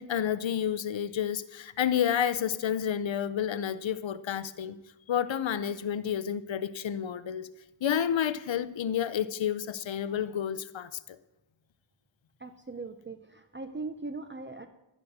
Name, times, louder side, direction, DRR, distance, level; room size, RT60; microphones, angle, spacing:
voice 1, 0.0-4.7 5.1-7.5 7.8-11.2, left 9 dB, 70° left, 13 dB, 0.7 m, -30 dB
voice 2, 12.4-14.7, right 3 dB, 25° right, 7 dB, 0.9 m, -40 dB
11.0 x 10.5 x 6.5 m, 0.94 s
wide cardioid pair, 65°, 47 cm